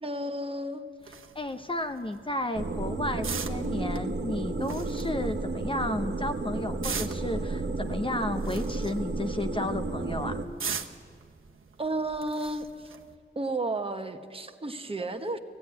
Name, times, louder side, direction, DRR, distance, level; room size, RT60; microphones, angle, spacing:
voice 1, 0.0-0.8 11.8-12.9 13.3-15.4, right 2 dB, 25° right, 6 dB, 1.1 m, -32 dB
sound 1, 1.0-13.1, right 6 dB, 90° right, 1.0 m, -42 dB
voice 2, 1.3-10.4, left 1 dB, 25° left, 6 dB, 0.6 m, -33 dB
sound 2, 2.5-10.4, right 3 dB, 55° right, 1.3 m, -32 dB
18.0 x 15.0 x 9.6 m, 2.2 s
wide cardioid pair, 100°, 20 cm